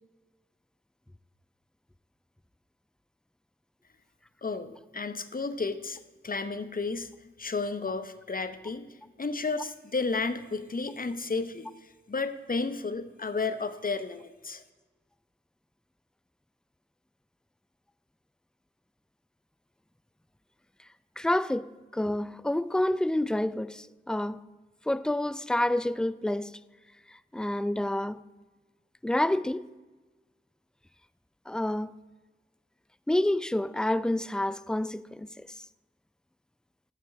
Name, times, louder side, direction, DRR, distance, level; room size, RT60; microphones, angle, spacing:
voice 1, 4.4-7.1 7.4-8.9 9.2-14.6, left 4 dB, 45° left, 0.8 m, -32 dB
voice 2, 21.2-24.4 24.9-26.6 27.1-28.2 29.0-29.7 31.5-31.9 33.1-35.6, left 1 dB, 5° left, 0.3 m, -28 dB
8.2 x 6.8 x 7.2 m
wide cardioid pair, 60°, 20 cm